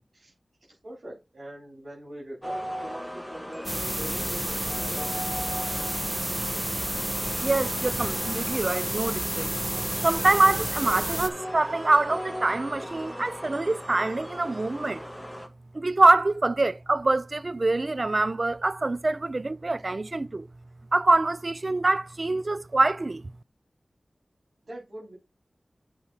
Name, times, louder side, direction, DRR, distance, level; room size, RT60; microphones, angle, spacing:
voice 1, 0.7-5.1 24.6-25.1, right 1 dB, 70° right, 4.8 m, -42 dB
sound 1, 2.4-15.5, equal, 5° left, 1.6 m, -38 dB
sound 2, 3.6-11.3, right 1 dB, 15° right, 1.2 m, -30 dB
voice 2, 7.4-9.5 10.0-15.0 15.7-20.5 20.9-23.2, right 2 dB, 45° right, 0.5 m, -24 dB
7.7 x 5.6 x 4.5 m
wide cardioid pair, 65°, 0 cm